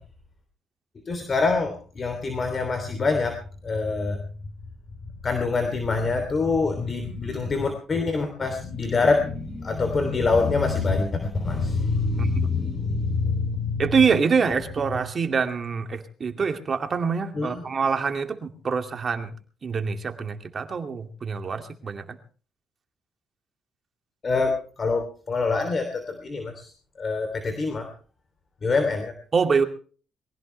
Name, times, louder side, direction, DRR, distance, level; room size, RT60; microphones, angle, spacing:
voice 1, 1.0-3.4 3.6-4.2 5.2-13.8 17.3-17.6 24.2-26.7 27.0-27.9 28.6-29.1, left 4 dB, 40° left, 6 dB, 3.2 m, -25 dB
voice 2, 12.2-12.8 13.8-19.3 19.6-22.2 29.3-29.6, right 5 dB, 40° right, 6 dB, 2.4 m, -25 dB
23.0 x 16.5 x 3.4 m, 0.40 s
cardioid pair, 90°, 0 cm